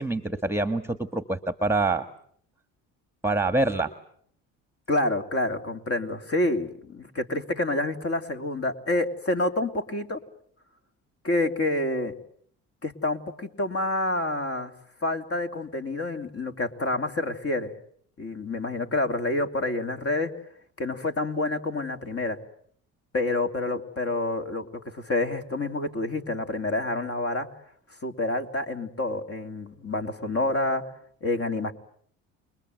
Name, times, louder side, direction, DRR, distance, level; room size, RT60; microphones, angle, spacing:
voice 1, 0.0-2.0 3.2-3.9, right 2 dB, 5° right, 10 dB, 1.5 m, -25 dB
voice 2, 4.9-10.2 11.2-12.1 12.8-14.7 15.0-17.7 18.2-20.3 20.8-22.4 23.1-27.5 28.0-30.8 31.2-31.7, left 2 dB, 40° left, 6 dB, 3.1 m, -28 dB
29.0 x 22.0 x 8.0 m, 0.63 s
supercardioid pair, 70°, 37 cm